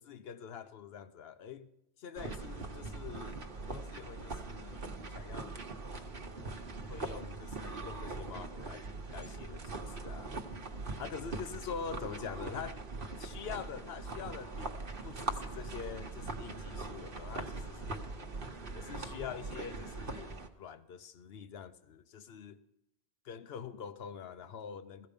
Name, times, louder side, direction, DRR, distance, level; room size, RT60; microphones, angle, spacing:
voice 1, 0.0-1.7 2.0-3.4 3.7-5.8 6.9-8.8 9.1-10.3 11.0-12.8 13.2-18.1 18.7-22.6 23.2-25.1, left 7 dB, 70° left, 1.0 m, -45 dB
sound 1, 2.2-20.5, right 3 dB, 55° right, 1.2 m, -41 dB
16.0 x 14.0 x 5.2 m
omnidirectional pair, 1.1 m